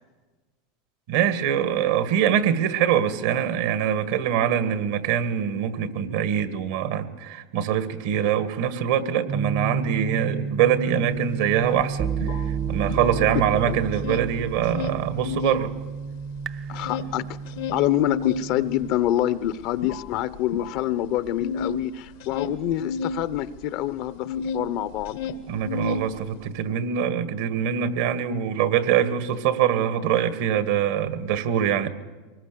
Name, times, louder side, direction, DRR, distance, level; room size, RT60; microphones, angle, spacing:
voice 1, 1.1-15.7 25.5-31.9, right 9 dB, 75° right, 11 dB, 1.7 m, -24 dB
sound 1, 9.3-18.9, right 6 dB, 35° right, 0.6 m, -31 dB
sound 2, 11.2-11.3 11.5-13.5 13.8-15.7 16.0-24.7 25.0-26.5, left 5 dB, 75° left, 1.4 m, -33 dB
voice 2, 13.2-13.8 16.7-17.2 17.7-25.2, left 13 dB, 60° left, 15 dB, 0.8 m, -26 dB
24.0 x 20.5 x 6.9 m, 1.3 s
hypercardioid pair, 105°, 0 cm